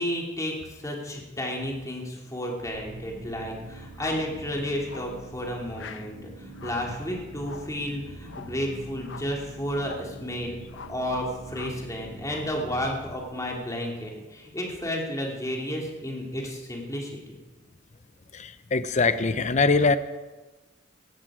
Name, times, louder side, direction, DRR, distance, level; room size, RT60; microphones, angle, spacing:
voice 1, 0.0-10.6 10.9-17.4, equal, 20° left, -1 dB, 2.9 m, -32 dB
sound 1, 2.6-14.4, right 2 dB, 65° right, 5.5 m, -44 dB
sound 2, 3.9-4.3 4.9-5.2 5.7-6.1 6.5-6.9 7.4-7.8 8.3-8.6 9.0-9.4 9.8-10.1 10.7-11.1 11.5-11.9 12.2-12.6, left 5 dB, 85° left, 0.8 m, -44 dB
voice 2, 18.3-20.0, left 3 dB, 40° left, 12 dB, 0.7 m, -22 dB
16.5 x 14.5 x 5.0 m, 1.2 s
head